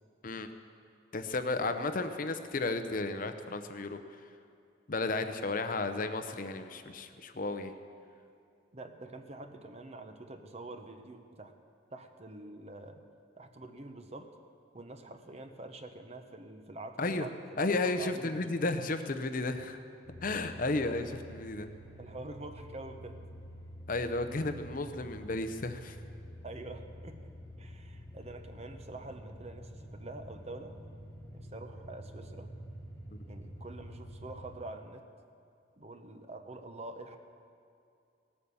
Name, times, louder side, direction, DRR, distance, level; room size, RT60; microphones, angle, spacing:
voice 1, 1.1-4.2 4.9-7.7 17.0-17.3 17.6-19.8 20.2-21.7 23.9-26.0 33.1-33.2, left 2 dB, 45° left, 8 dB, 0.7 m, -33 dB
voice 2, 1.7-2.1 8.7-11.5 11.9-13.0 13.4-14.3 14.7-18.5 22.0-23.2 26.4-27.3 27.6-30.8 31.3-32.5 33.3-35.0 35.8-37.2, right 2 dB, 35° right, 7 dB, 0.9 m, -46 dB
sound 1, 20.0-34.5, equal, 15° left, 1.4 m, -48 dB
17.5 x 8.7 x 7.0 m, 2.5 s
head